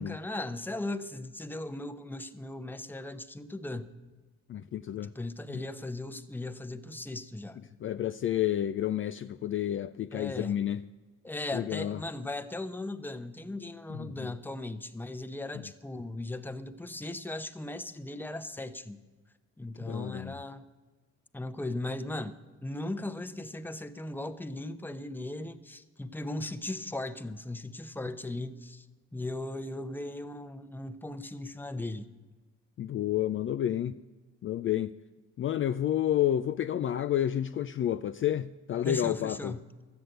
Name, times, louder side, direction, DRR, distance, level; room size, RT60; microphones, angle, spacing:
voice 1, 0.0-3.9 5.0-7.6 10.1-10.5 11.2-19.0 19.6-20.7 21.3-28.8 29.1-32.1 38.8-39.6, left 2 dB, 5° left, 0.7 m, -38 dB
voice 2, 4.5-5.1 5.5-5.6 7.8-10.8 11.5-12.0 13.9-14.3 19.8-20.4 32.8-34.0 34.4-34.9 35.4-39.5, left 11 dB, 45° left, 0.4 m, -30 dB
13.0 x 8.2 x 7.7 m
cardioid pair, 90°, 30 cm